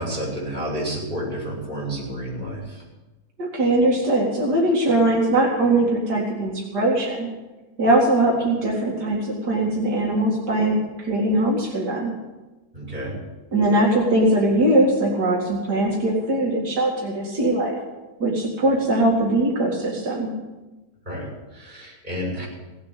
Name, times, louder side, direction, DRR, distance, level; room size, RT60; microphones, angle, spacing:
voice 1, 0.0-2.8 12.7-13.1 21.1-22.5, equal, 25° right, -4 dB, 6.3 m, -30 dB
voice 2, 3.4-7.3 7.8-12.1 13.5-17.8 18.2-20.3, right 1 dB, 85° right, -2 dB, 2.9 m, -21 dB
17.5 x 8.6 x 7.5 m, 1.1 s
omnidirectional pair, 1.7 m